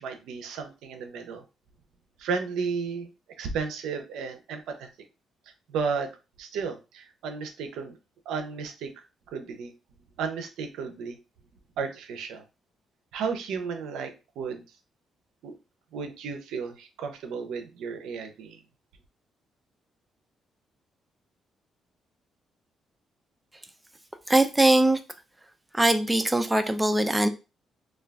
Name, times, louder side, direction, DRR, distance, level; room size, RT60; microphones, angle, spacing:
voice 1, 0.0-1.4 2.2-3.1 3.4-4.9 5.7-6.1 6.4-8.0 8.3-8.9 9.3-9.7 10.2-11.2 11.8-12.4 13.1-14.6 15.4-15.6 15.9-18.6, right 5 dB, 85° right, 0.4 m, -33 dB
voice 2, 24.3-25.0 25.7-27.3, right 1 dB, 10° right, 0.3 m, -21 dB
2.2 x 2.2 x 3.3 m
cardioid pair, 90°, 0 cm